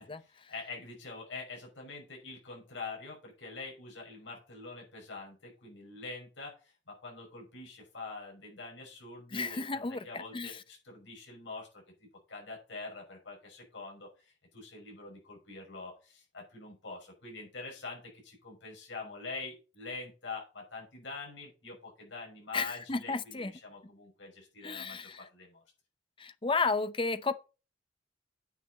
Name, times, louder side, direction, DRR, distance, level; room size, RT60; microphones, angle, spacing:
voice 1, 0.3-25.6, left 3 dB, 75° left, 5.5 m, -45 dB
voice 2, 9.3-10.5 22.5-23.5 24.6-25.2 26.2-27.3, left 4 dB, 25° left, 0.6 m, -33 dB
9.3 x 6.8 x 4.2 m
head